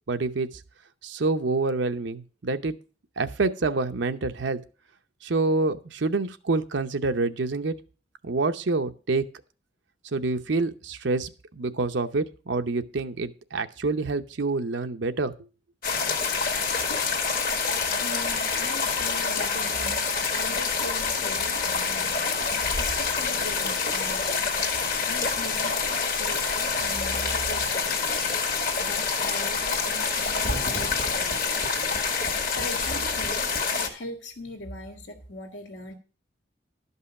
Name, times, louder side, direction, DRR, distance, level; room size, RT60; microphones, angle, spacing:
voice 1, 0.1-0.5 1.0-2.7 3.2-4.6 5.2-7.7 8.2-9.2 10.1-15.3, right 3 dB, 70° right, 8 dB, 0.7 m, -27 dB
sound 1, 15.8-33.9, left 5 dB, 45° left, 1.7 m, -27 dB
voice 2, 17.7-22.3 22.8-24.6 25.1-25.8 26.2-28.2 28.8-31.6 32.5-33.4 33.8-35.9, left 1 dB, 75° left, 3 dB, 1.8 m, -40 dB
12.0 x 5.5 x 7.0 m, 0.36 s
head